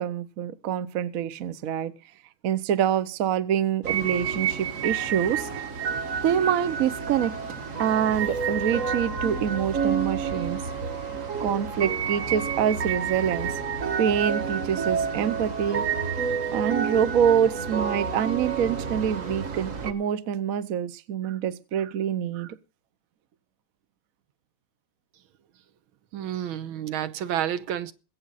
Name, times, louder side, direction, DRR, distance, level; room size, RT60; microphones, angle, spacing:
voice 1, 0.0-1.9 2.4-5.6 6.2-7.3 7.8-10.6 11.4-13.5 14.0-15.8 16.5-22.6, right 9 dB, 60° right, 0.9 m, -26 dB
sound 1, 3.8-19.9, right 6 dB, 40° right, 1.5 m, -29 dB
voice 2, 26.1-27.9, right 10 dB, 75° right, 1.6 m, -30 dB
21.5 x 8.6 x 4.1 m
omnidirectional pair, 2.3 m